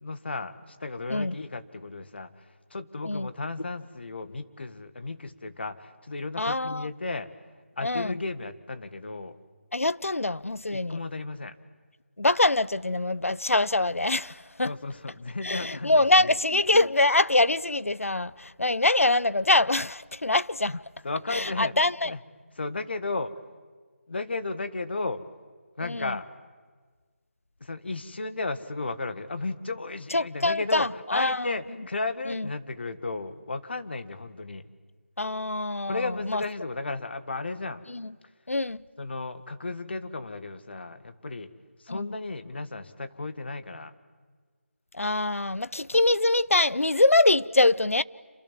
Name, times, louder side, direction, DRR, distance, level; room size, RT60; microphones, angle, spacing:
voice 1, 0.0-7.3 7.8-9.4 10.7-11.6 14.6-16.4 20.6-20.7 21.0-21.8 22.0-22.2 22.5-23.3 24.1-25.2 25.8-26.2 27.6-34.7 35.8-37.8 39.0-41.5 41.8-43.9, left 3 dB, 50° left, 1.7 m, -34 dB
voice 2, 6.4-6.9 7.8-8.1 9.7-11.0 12.2-14.7 15.4-20.8 21.3-22.1 25.8-26.1 30.1-31.5 32.3-32.5 35.2-36.4 37.9-38.1 38.5-38.8 41.9-42.1 44.9-48.0, left 2 dB, 80° left, 0.8 m, -24 dB
27.5 x 27.0 x 7.5 m
figure-of-eight pair, 160°, 7 cm